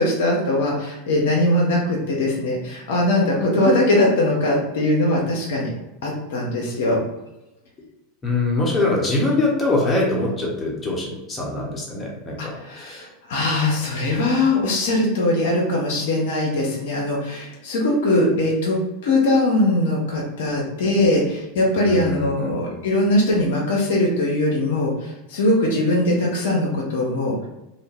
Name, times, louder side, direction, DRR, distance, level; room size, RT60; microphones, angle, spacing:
voice 1, 0.0-5.7 6.0-7.0 12.4-18.8 19.0-27.5, left 1 dB, 65° left, -2 dB, 0.6 m, -21 dB
voice 2, 8.2-13.1 21.8-22.5, left 2 dB, 25° left, -2 dB, 0.8 m, -23 dB
2.4 x 2.1 x 3.3 m, 0.99 s
figure-of-eight pair, 85°, 0 cm